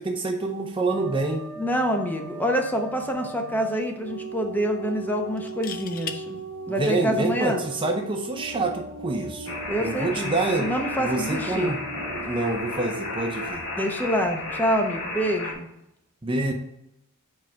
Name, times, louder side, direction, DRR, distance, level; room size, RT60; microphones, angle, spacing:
voice 1, 0.0-1.5 6.8-10.7 11.0-13.6 16.2-16.5, right 2 dB, 25° right, 3 dB, 0.6 m, -27 dB
sound 1, 0.9-13.5, right 3 dB, 85° right, 0.8 m, -39 dB
voice 2, 1.6-6.4 6.7-7.6 9.7-11.7 13.8-15.7, equal, 10° left, 3 dB, 0.8 m, -26 dB
sound 2, 2.5-2.8 3.1-3.2 5.4-6.2 8.0-8.3, left 7 dB, 40° left, 0.5 m, -37 dB
sound 3, 9.5-15.5, left 2 dB, 65° left, 1.8 m, -33 dB
4.8 x 4.8 x 6.1 m, 0.83 s
head